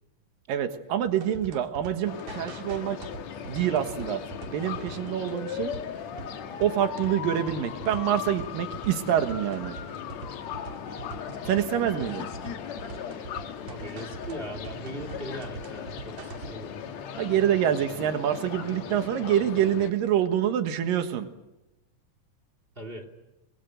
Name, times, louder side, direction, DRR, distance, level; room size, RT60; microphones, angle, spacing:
voice 1, 0.5-3.0 3.5-4.2 4.5-5.7 6.6-9.7 11.5-12.3 17.2-21.3, right 10 dB, 90° right, 8 dB, 3.1 m, -26 dB
sound 1, 1.1-16.7, right 5 dB, 60° right, 3.6 m, -44 dB
sound 2, 2.0-19.9, left 8 dB, 60° left, 2.5 m, -38 dB
voice 2, 13.7-16.8 22.7-23.1, right 1 dB, 20° right, 7 dB, 2.5 m, -39 dB
25.0 x 21.5 x 9.1 m, 0.99 s
omnidirectional pair, 3.9 m